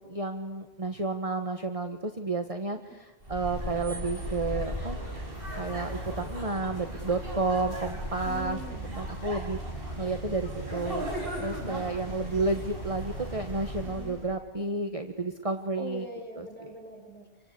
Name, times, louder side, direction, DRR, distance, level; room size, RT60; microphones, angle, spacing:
voice 1, 0.1-5.0 5.6-8.6 9.0-11.0 11.4-16.0 16.4-16.7, right 3 dB, 30° right, 6 dB, 1.4 m, -31 dB
sound 1, 3.2-14.3, right 1 dB, 60° right, 6.4 m, -36 dB
voice 2, 8.2-9.0 12.0-12.8 13.8-14.1 15.8-17.5, equal, 10° left, 0 dB, 6.3 m, -43 dB
28.5 x 24.0 x 8.4 m, 1.2 s
omnidirectional pair, 1.1 m